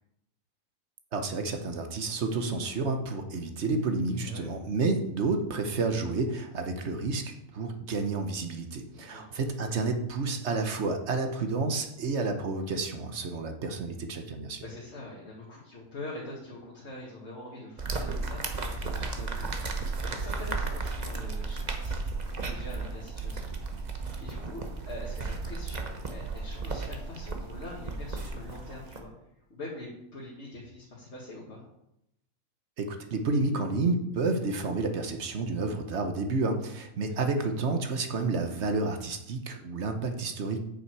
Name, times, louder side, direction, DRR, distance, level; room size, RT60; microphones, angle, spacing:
voice 1, 1.1-14.6 32.8-40.6, right 3 dB, 55° right, 6 dB, 1.2 m, -30 dB
voice 2, 4.2-4.5 8.9-9.4 14.6-29.1 29.5-31.6 37.1-37.2, left 2 dB, 50° left, -6 dB, 2.0 m, -44 dB
sound 1, 17.8-29.0, right 3 dB, 35° right, 0.9 m, -34 dB
8.5 x 6.5 x 4.6 m, 0.81 s
omnidirectional pair, 1.5 m